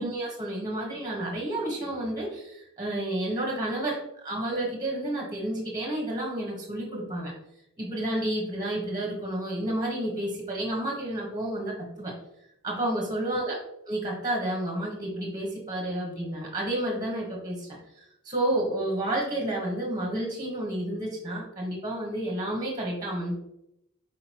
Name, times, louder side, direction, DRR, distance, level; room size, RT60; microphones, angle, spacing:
voice 1, 0.0-7.3 7.8-12.1 12.6-13.6 13.9-17.7 18.2-23.3, right 1 dB, 20° right, -2 dB, 1.6 m, -30 dB
6.3 x 5.2 x 3.0 m, 0.80 s
head